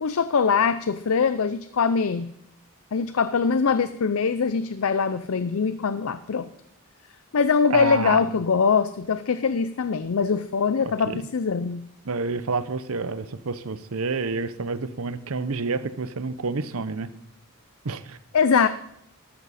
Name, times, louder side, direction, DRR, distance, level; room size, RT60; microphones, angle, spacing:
voice 1, 0.0-2.3 2.9-6.5 7.3-11.8 18.3-18.7, left 5 dB, 70° left, 13 dB, 0.5 m, -22 dB
voice 2, 7.7-8.2 11.1-11.2 12.0-17.1 17.8-18.2, right 4 dB, 70° right, 13 dB, 0.8 m, -29 dB
13.5 x 12.0 x 4.2 m, 0.76 s
head